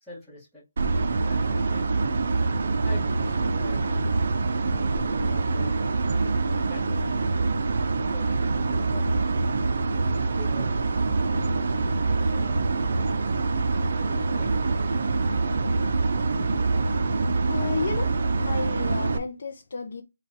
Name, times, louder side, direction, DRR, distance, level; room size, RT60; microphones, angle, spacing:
voice 1, 0.0-0.6 1.1-1.9 2.8-4.0 4.7-5.9 6.7-7.4 8.1-9.4 10.3-10.8 11.2-13.1 13.6-14.9, left 1 dB, ahead, 1.5 m, -46 dB
sound 1, 0.8-19.2, right 3 dB, 45° right, 0.5 m, -25 dB
sound 2, 10.0-11.0 12.6-12.7 13.9-14.1 14.6-15.9 16.2-16.8 18.1-18.5 18.7-19.0, right 2 dB, 20° right, 1.2 m, -45 dB
voice 2, 17.4-20.0, left 4 dB, 45° left, 0.5 m, -32 dB
5.5 x 2.4 x 2.8 m
hypercardioid pair, 175°, 0 cm